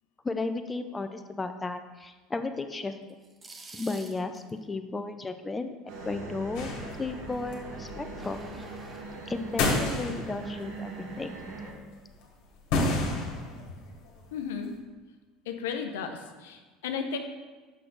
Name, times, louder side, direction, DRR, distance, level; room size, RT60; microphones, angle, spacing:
voice 1, 0.2-3.0 3.7-8.4 9.3-11.3, left 3 dB, 20° left, 8 dB, 0.5 m, -34 dB
sound 1, 3.1-4.6 7.9-9.0, right 2 dB, 20° right, 0.8 m, -48 dB
sound 2, 5.9-11.7, right 2 dB, 70° right, 1.2 m, -41 dB
sound 3, 6.5-10.7 11.1-11.8 12.2-12.3 12.6-14.5, left 2 dB, 65° left, 1.6 m, -32 dB
voice 2, 14.3-14.7 15.5-17.2, left 6 dB, 80° left, 6 dB, 0.6 m, -34 dB
6.3 x 5.7 x 3.8 m, 1.4 s
hypercardioid pair, 80°, 0 cm